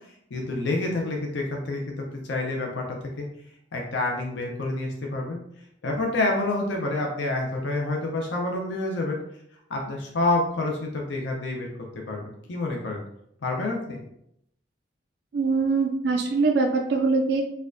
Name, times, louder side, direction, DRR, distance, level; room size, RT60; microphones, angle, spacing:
voice 1, 0.3-3.3 3.7-5.4 5.8-9.2 9.7-11.7 11.9-13.0 13.4-14.0, left 2 dB, 70° left, 0 dB, 0.5 m, -28 dB
voice 2, 15.3-17.4, right 4 dB, 60° right, 3 dB, 0.3 m, -23 dB
4.2 x 2.3 x 2.5 m, 0.75 s
head